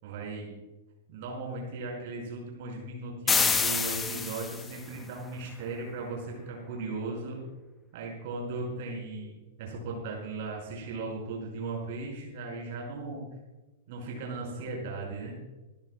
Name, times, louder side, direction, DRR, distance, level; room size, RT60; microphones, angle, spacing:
voice 1, 0.0-0.5 1.1-7.4 7.9-9.3 9.6-13.2 13.9-15.3, right 3 dB, 50° right, -1 dB, 5.4 m, -37 dB
sound 1, 3.3-4.8, left 5 dB, 15° left, 0.9 m, -27 dB
29.0 x 12.0 x 2.3 m, 1.1 s
figure-of-eight pair, 100°, 0 cm